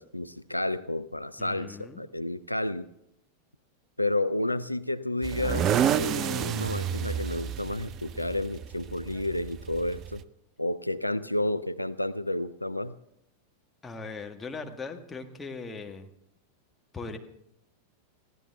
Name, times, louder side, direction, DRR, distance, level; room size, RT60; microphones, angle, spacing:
voice 1, 0.0-2.9 4.0-10.2 10.6-12.9, left 1 dB, 85° left, 13 dB, 0.4 m, -31 dB
voice 2, 1.4-2.0 13.8-16.1 16.9-17.2, left 4 dB, 15° left, 3 dB, 1.6 m, -39 dB
sound 1, 5.2-10.2, right 9 dB, 35° right, 0.6 m, -30 dB
21.5 x 15.5 x 3.5 m, 0.77 s
figure-of-eight pair, 90°, 0 cm